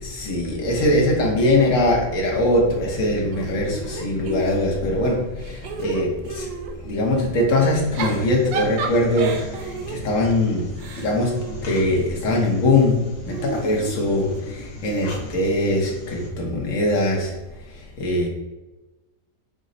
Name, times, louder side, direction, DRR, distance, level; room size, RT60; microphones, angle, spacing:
voice 1, 0.0-6.5 6.8-9.4 9.9-10.7 10.9-13.0 13.3-17.3 18.0-18.3, left 1 dB, 55° left, -1 dB, 1.1 m, -21 dB
Giggle / Chuckle chortle, 3.3-4.9 5.4-6.8 7.7-12.2 13.3-14.7, right 5 dB, 85° right, 1.3 m, -32 dB
sound 1, 7.7-16.3, left 1 dB, 90° left, 1.6 m, -39 dB
5.1 x 2.2 x 3.8 m, 1.1 s
omnidirectional pair, 1.9 m